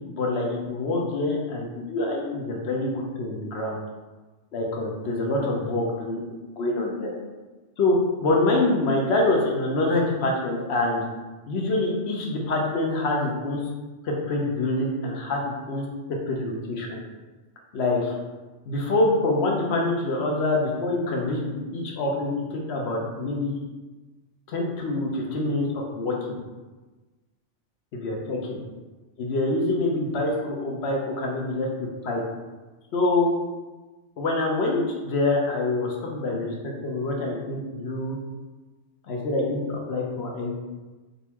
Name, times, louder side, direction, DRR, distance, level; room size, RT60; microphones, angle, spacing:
voice 1, 0.1-3.8 4.5-6.2 6.6-7.1 7.8-11.0 11.5-13.6 14.0-15.8 16.3-17.0 17.7-18.1 18.7-23.6 24.5-26.4 27.9-28.6 29.2-31.7 32.0-32.2 32.9-33.3 34.2-38.2 39.1-40.5, left 2 dB, 65° left, -1 dB, 0.9 m, -25 dB
3.9 x 2.5 x 2.9 m, 1.2 s
omnidirectional pair, 1.2 m